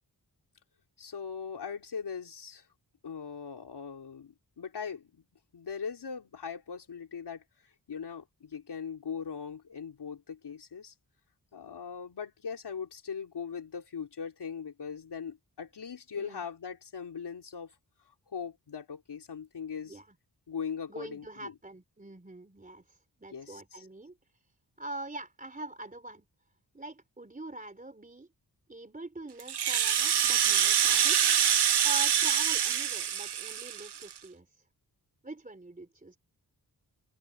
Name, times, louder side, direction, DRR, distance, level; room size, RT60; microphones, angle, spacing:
voice 1, 1.0-2.7 3.0-5.2 5.5-10.9 11.5-17.7 18.1-20.0 20.5-21.5 23.3-23.9, left 6 dB, 80° left, 4.0 m, -40 dB
voice 2, 16.1-16.5 19.8-20.1 20.9-24.2 24.8-26.3 26.7-28.3 28.7-31.2 31.8-34.6 35.2-36.2, right 2 dB, 20° right, 3.7 m, -43 dB
Rattle (instrument), 29.4-34.2, right 9 dB, 75° right, 0.9 m, -25 dB
open air
wide cardioid pair, 120°, 39 cm